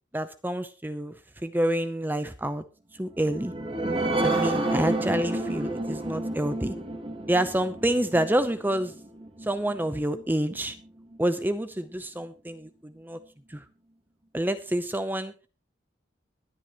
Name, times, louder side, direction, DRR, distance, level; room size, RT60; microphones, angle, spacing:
voice 1, 0.1-1.1 1.4-2.6 3.0-3.5 4.2-6.8 7.3-8.9 9.4-10.7 11.2-13.2 13.5-13.6 14.3-15.3, right 1 dB, 10° right, 11 dB, 0.6 m, -28 dB
sound 1, 3.1-10.2 10.7-10.8 11.1-11.2, right 2 dB, 30° right, 2.4 m, -30 dB
22.0 x 9.5 x 3.0 m, 0.30 s
head